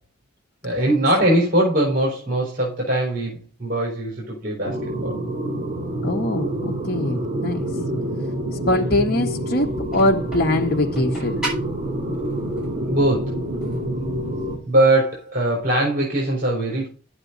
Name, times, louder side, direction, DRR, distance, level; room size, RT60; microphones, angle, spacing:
voice 1, 0.6-5.1 7.7-8.1 12.9-13.3 14.7-16.9, right 1 dB, 45° right, 4.2 m, -21 dB
sound 1, 4.6-14.5, right 1 dB, 25° right, 3.7 m, -27 dB
voice 2, 6.0-7.7 8.7-11.5, left 1 dB, 50° left, 1.2 m, -22 dB
sound 2, 9.6-14.6, right 1 dB, 5° right, 7.1 m, -37 dB
11.0 x 8.2 x 4.0 m
head